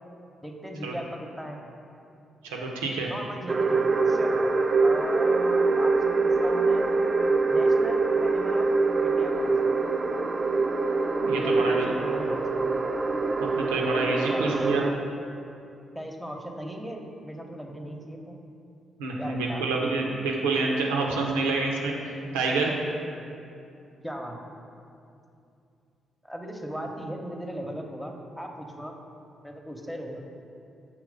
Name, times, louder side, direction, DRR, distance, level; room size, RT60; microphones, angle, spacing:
voice 1, 0.4-1.6 3.1-4.6 4.8-6.9 7.5-8.7 9.0-9.7 11.2-12.6 14.3-14.5 15.9-18.3 19.2-19.7 24.0-24.5 26.2-28.9 29.4-30.3, equal, ahead, 1 dB, 0.8 m, -37 dB
voice 2, 2.4-3.1 11.2-11.9 13.4-14.8 19.0-22.7, right 3 dB, 85° right, -1 dB, 0.6 m, -28 dB
sound 1, 3.5-14.9, right 3 dB, 40° right, 0.4 m, -24 dB
6.5 x 3.0 x 5.1 m, 2.6 s
hypercardioid pair, 45°, 0 cm